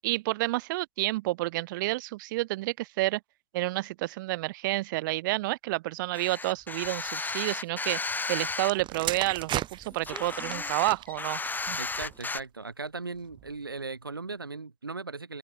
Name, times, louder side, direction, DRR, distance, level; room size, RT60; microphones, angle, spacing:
voice 1, 0.0-3.2 3.5-8.0 8.3-11.4 11.7-11.8, right 19 dB, 65° right, 2.7 m, -30 dB
sound 1, 6.1-8.7 9.2-12.4, left 3 dB, 15° left, 5.0 m, -34 dB
sound 2, 8.6-12.5 13.2-13.5, right 12 dB, 45° right, 4.0 m, -37 dB
voice 2, 11.8-15.4, right 3 dB, 90° right, 5.1 m, -38 dB
open air
figure-of-eight pair, 70°, 11 cm